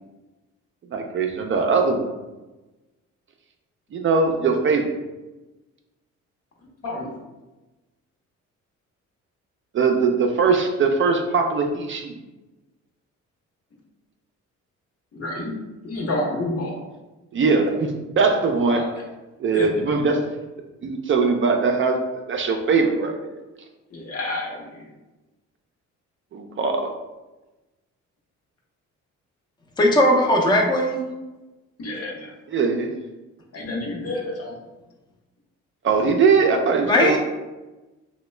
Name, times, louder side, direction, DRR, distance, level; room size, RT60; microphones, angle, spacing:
voice 1, 0.9-2.1 3.9-4.9 9.7-12.2 17.3-18.8 19.4-20.2 20.8-23.4 26.3-26.9 32.5-32.9 35.8-37.2, right 4 dB, 40° right, 3 dB, 0.4 m, -21 dB
voice 2, 6.8-7.2 15.1-16.8 18.6-18.9 19.5-19.9 23.9-24.9 31.8-32.3 33.5-34.6, left 2 dB, 50° left, -1 dB, 0.9 m, -29 dB
voice 3, 29.8-31.0 36.8-37.2, left 1 dB, 15° left, 0 dB, 0.5 m, -18 dB
2.9 x 2.2 x 3.1 m, 1.1 s
cardioid pair, 90°, 30 cm